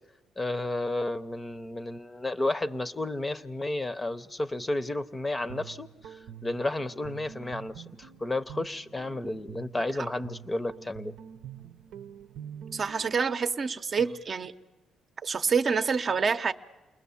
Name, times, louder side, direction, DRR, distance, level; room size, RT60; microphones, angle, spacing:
voice 1, 0.4-11.1, left 2 dB, 20° left, 12 dB, 0.7 m, -32 dB
Guitar, 5.2-13.2, right 9 dB, 80° right, 0.7 m, -46 dB
voice 2, 12.7-14.5 15.2-16.5, right 5 dB, 45° right, 8 dB, 0.7 m, -27 dB
28.5 x 20.5 x 7.1 m, 1.1 s
cardioid pair, 90°, 0 cm